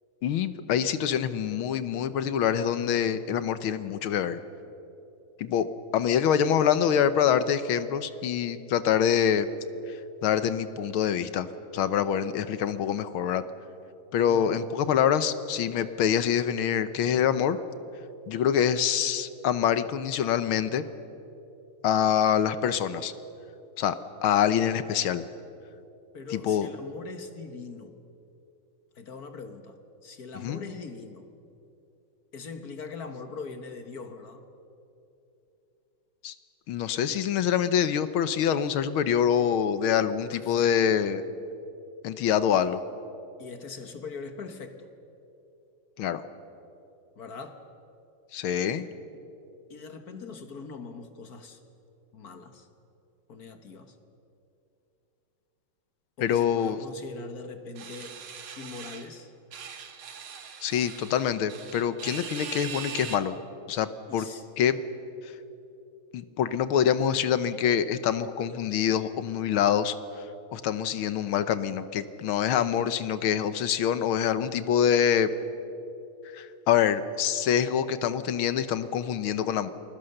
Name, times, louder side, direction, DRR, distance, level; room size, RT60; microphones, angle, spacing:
voice 1, 0.2-4.4 5.4-5.7 5.9-9.5 9.9-10.0 10.2-11.5 11.7-13.4 14.1-17.6 18.3-20.8 21.8-23.1 23.8-24.0 24.2-25.3 26.3-26.7 30.4-30.6 36.2-36.3 36.7-41.2 42.0-42.8 46.0-46.2 48.3-48.9 56.2-56.8 60.6-63.4 63.7-64.3 64.6-64.8 66.1-70.0 70.5-75.3 76.3-79.7, left 9 dB, 80° left, 12 dB, 1.8 m, -25 dB
voice 2, 26.1-28.0 28.9-31.3 32.3-34.5 40.3-40.8 43.4-44.9 47.2-47.6 49.7-51.6 52.1-52.7 53.3-54.0 56.2-58.2 58.6-59.3 64.1-64.5, left 4 dB, 50° left, 8 dB, 1.7 m, -41 dB
sound 1, 57.8-59.1 59.5-63.2, right 7 dB, 80° right, 2.3 m, -41 dB
28.5 x 21.5 x 6.6 m, 2.8 s
omnidirectional pair, 2.3 m